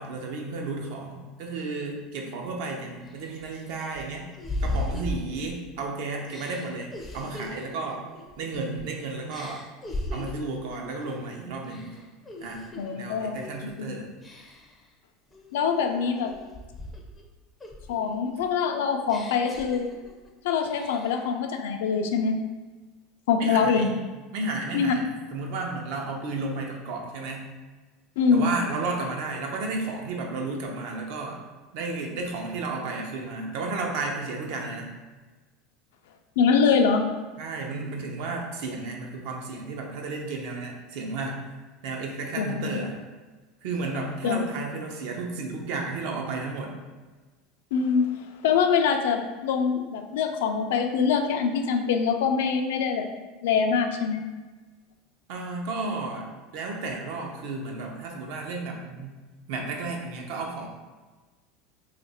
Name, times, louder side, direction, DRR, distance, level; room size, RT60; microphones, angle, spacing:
voice 1, 0.0-4.3 4.6-8.1 8.4-9.6 10.1-12.0 12.4-12.6 12.9-14.1 23.4-23.9 24.3-27.5 28.3-31.4 31.7-34.9 37.4-41.4 41.8-43.0 43.6-46.7 55.3-56.3 56.5-59.1 59.5-60.7, right 3 dB, 65° right, 1 dB, 0.6 m, -33 dB
sound 1, 2.4-2.5 3.1-5.8 6.3-8.9 9.3-10.5 11.0-11.3 11.6-12.9 13.4-13.7 14.2-14.8 15.3-17.2 17.6-20.3 20.6-21.3, left 1 dB, 15° left, 0.4 m, -37 dB
voice 2, 12.8-13.4 13.8-13.9 15.5-16.3 17.9-19.9 20.4-22.4 23.3-23.9 24.7-24.9 28.2-28.5 36.4-37.0 42.4-42.8 44.2-44.4 47.7-48.1 48.4-53.1 53.4-54.2, left 6 dB, 90° left, 5 dB, 0.4 m, -24 dB
2.8 x 2.5 x 4.1 m, 1.3 s
supercardioid pair, 150°, 0 cm